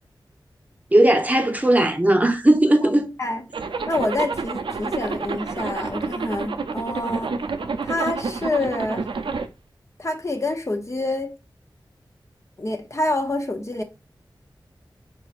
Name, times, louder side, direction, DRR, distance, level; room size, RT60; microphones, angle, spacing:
voice 1, 0.9-3.1, right 1 dB, 20° right, 0.8 m, -17 dB
Zipper (clothing), 3.5-9.5, right 4 dB, 80° right, 0.5 m, -29 dB
voice 2, 3.9-7.4 7.8-9.1 10.0-11.3 12.6-13.8, left 2 dB, 35° left, 0.7 m, -27 dB
4.6 x 4.0 x 2.5 m
wide cardioid pair, 55°, 8 cm